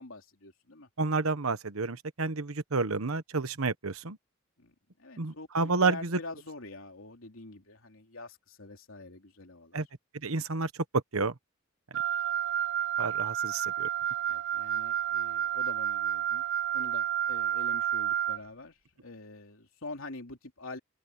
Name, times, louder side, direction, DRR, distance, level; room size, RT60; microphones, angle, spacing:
voice 1, 0.0-0.9 4.6-9.8 14.2-16.5 16.7-20.8, left 2 dB, 75° left, 3.1 m, -46 dB
voice 2, 1.0-4.2 5.2-6.2 9.7-9.9 10.2-11.3 13.0-13.9, right 3 dB, 85° right, 1.2 m, -30 dB
Wind instrument woodwind instrument, 11.9-18.4, right 10 dB, 65° right, 2.2 m, -30 dB
head